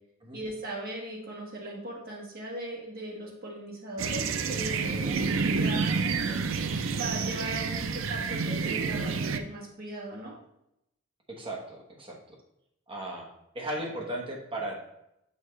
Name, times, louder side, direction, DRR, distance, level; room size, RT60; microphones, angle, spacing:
voice 1, 0.3-6.4 6.9-10.3, right 1 dB, 45° right, -2 dB, 1.5 m, -38 dB
sound 1, 4.0-9.4, right 5 dB, 65° right, 0.4 m, -29 dB
voice 2, 11.4-12.2 12.9-13.3 13.5-14.9, right 1 dB, 25° right, -1 dB, 1.1 m, -36 dB
6.5 x 4.5 x 3.3 m, 0.82 s
head